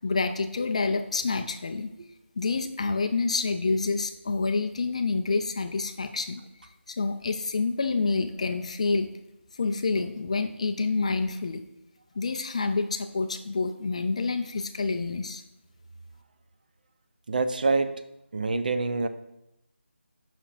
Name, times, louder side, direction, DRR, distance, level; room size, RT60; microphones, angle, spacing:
voice 1, 0.0-1.9 2.4-6.4 6.9-9.1 9.6-11.6 12.2-15.4, left 3 dB, 30° left, 8 dB, 0.3 m, -28 dB
voice 2, 17.3-18.0 18.3-19.1, right 3 dB, 40° right, 9 dB, 0.5 m, -26 dB
9.5 x 5.9 x 2.5 m, 0.87 s
figure-of-eight pair, 160°, 7 cm